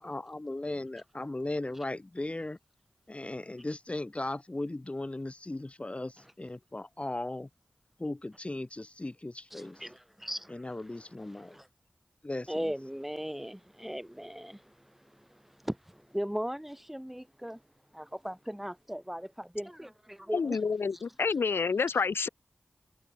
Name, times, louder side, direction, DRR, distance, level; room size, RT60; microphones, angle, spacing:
voice 1, 0.0-2.6 3.1-7.5 8.0-9.8 10.5-11.6 12.2-12.7, left 2 dB, 30° left, 3.2 m, -37 dB
voice 2, 9.5-11.7 12.5-17.6 17.9-20.6 20.9-21.0, equal, 5° right, 7.3 m, -39 dB
voice 3, 20.3-22.3, left 5 dB, 85° left, 4.5 m, -28 dB
cardioid pair, 45°, 4 cm